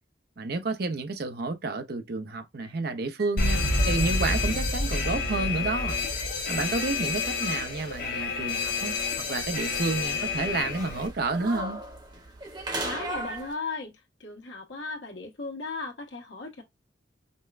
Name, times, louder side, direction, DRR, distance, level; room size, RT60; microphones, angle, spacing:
voice 1, 0.4-6.0 6.5-9.0 9.3-11.8, right 3 dB, 60° right, 0.7 m, -30 dB
sound 1, 2.6-2.8 3.2-4.6 6.2-8.5 9.5-10.4 10.7-11.6 12.7-13.8, right 3 dB, 80° right, 2.5 m, -48 dB
Alarm, 3.4-11.1, left 3 dB, 50° left, 0.9 m, -28 dB
sound 2, 3.8-13.5, right 1 dB, 25° right, 1.0 m, -40 dB
voice 2, 12.8-16.6, left 3 dB, 80° left, 1.3 m, -36 dB
5.3 x 2.1 x 2.4 m
head